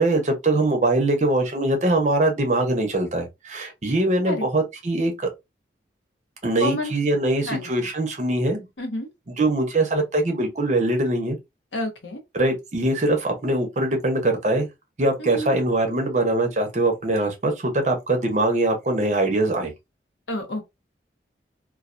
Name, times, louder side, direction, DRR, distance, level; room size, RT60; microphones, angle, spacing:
voice 1, 0.0-5.3 6.4-8.7 9.4-11.4 12.3-14.7 15.0-19.7, right 2 dB, 40° right, 0.6 m, -22 dB
voice 2, 6.6-6.9 7.4-7.9 8.8-9.1 11.7-12.2 15.2-15.6 20.3-20.6, equal, 90° left, 0.8 m, -29 dB
2.3 x 2.2 x 2.4 m
head